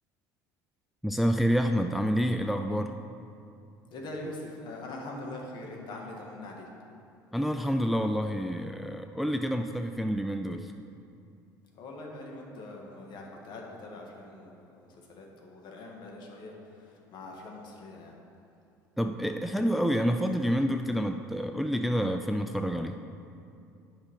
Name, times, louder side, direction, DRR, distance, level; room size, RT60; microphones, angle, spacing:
voice 1, 1.0-2.9 7.3-10.7 19.0-23.0, equal, ahead, 6 dB, 0.4 m, -28 dB
voice 2, 3.9-6.7 11.8-18.1, left 2 dB, 55° left, 0 dB, 1.8 m, -43 dB
8.8 x 5.6 x 5.5 m, 2.6 s
hypercardioid pair, 80°, 9 cm